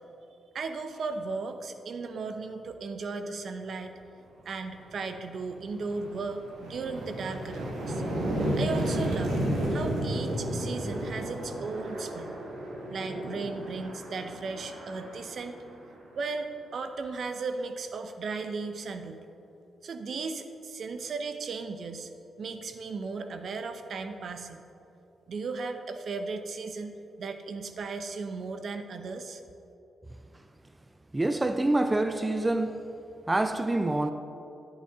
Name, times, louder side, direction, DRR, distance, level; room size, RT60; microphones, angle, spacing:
voice 1, 0.5-3.9 4.4-8.0 8.5-9.4 9.7-12.3 12.9-15.6 16.1-19.2 19.8-22.1 22.4-24.6 25.3-26.9 27.2-29.4, right 4 dB, 65° right, 0.7 m, -36 dB
sound 1, 4.8-5.0 5.4-16.2, right 1 dB, 85° right, 1.6 m, -33 dB
voice 2, 31.1-32.9 33.3-34.1, right 2 dB, 20° right, 0.5 m, -26 dB
11.0 x 8.8 x 3.6 m
supercardioid pair, 55°, 0 cm